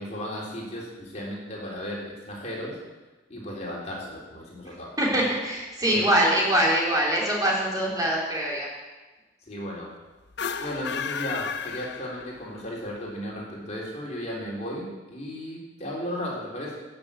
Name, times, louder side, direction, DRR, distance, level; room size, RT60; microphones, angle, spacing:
voice 1, 0.0-2.8 3.3-5.2 5.9-6.1 9.4-9.9 10.6-16.8, equal, 35° left, -3 dB, 3.7 m, -35 dB
voice 2, 5.0-8.7, right 1 dB, 20° right, -4 dB, 3.8 m, -23 dB
sound 1, 10.3-12.6, left 6 dB, 55° left, 0.6 m, -33 dB
15.5 x 6.9 x 8.8 m, 1.2 s
head